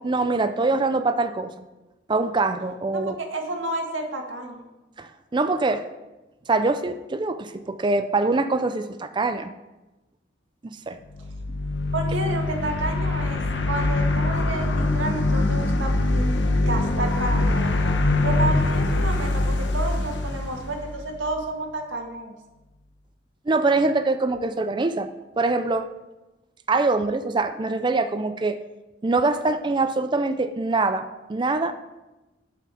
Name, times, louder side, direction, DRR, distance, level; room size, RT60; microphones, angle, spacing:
voice 1, 0.0-1.5 2.1-3.2 5.0-5.9 6.5-9.5 10.6-11.0 23.5-25.1 25.4-25.9 26.7-28.6 29.0-31.7, right 3 dB, 25° right, 9 dB, 0.4 m, -24 dB
voice 2, 2.9-4.6 11.9-13.4 13.7-16.3 16.6-17.7 18.2-22.3, right 2 dB, 85° right, 2 dB, 1.7 m, -30 dB
sound 1, 11.1-21.3, left 2 dB, 70° left, 0.9 m, -23 dB
10.5 x 5.8 x 6.2 m, 1.1 s
head